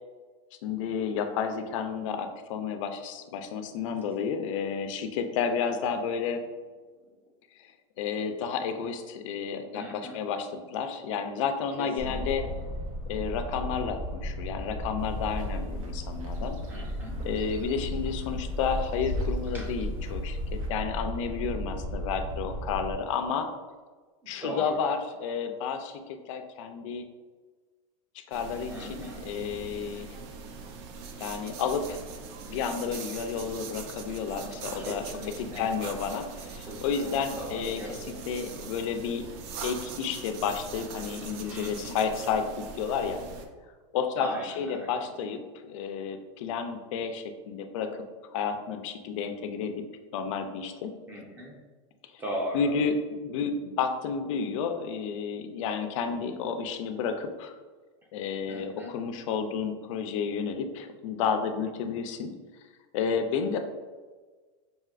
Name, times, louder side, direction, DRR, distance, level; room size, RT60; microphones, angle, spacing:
voice 1, 0.6-6.4 7.6-7.7 8.0-12.4 13.1-16.6 17.2-23.5 24.3-27.0 28.1-30.2 31.2-32.0 32.5-35.0 35.6-37.8 38.3-39.3 39.6-42.5 42.8-43.2 43.9-48.0 48.3-49.8 50.1-50.9 52.5-53.0 53.2-57.5 58.1-62.3 62.9-63.6, left 6 dB, 70° left, 7 dB, 0.4 m, -31 dB
voice 2, 9.7-10.2 11.8-12.5 16.7-17.2 19.5-19.7 24.2-24.9 28.7-29.2 34.7-35.8 36.7-37.1 37.4-38.3 41.5-42.0 44.2-45.0 48.5-48.6 51.1-51.6 52.2-52.7 58.5-58.9, equal, 10° right, -2 dB, 0.7 m, -39 dB
sound 1, 12.0-22.9, equal, 35° right, 1.3 m, -35 dB
sound 2, 15.0-20.7, left 1 dB, 80° right, 0.8 m, -38 dB
sound 3, 28.3-43.5, right 5 dB, 50° right, 0.5 m, -42 dB
5.6 x 2.7 x 2.4 m, 1.4 s
supercardioid pair, 155°, 17 cm